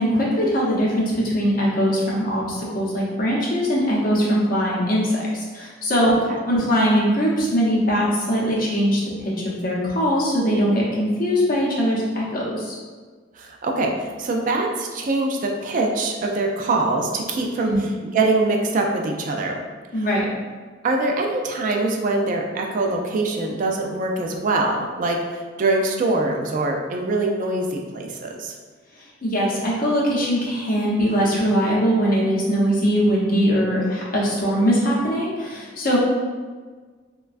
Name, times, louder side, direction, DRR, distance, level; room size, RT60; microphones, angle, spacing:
voice 1, 0.0-6.2 6.5-12.7 17.7-17.8 19.9-20.3 29.0-36.0, equal, 50° left, -5 dB, 0.7 m, -21 dB
voice 2, 13.4-17.7 18.1-19.6 20.8-28.5, right 2 dB, 45° right, 1 dB, 0.3 m, -23 dB
3.1 x 2.2 x 2.4 m, 1.5 s
head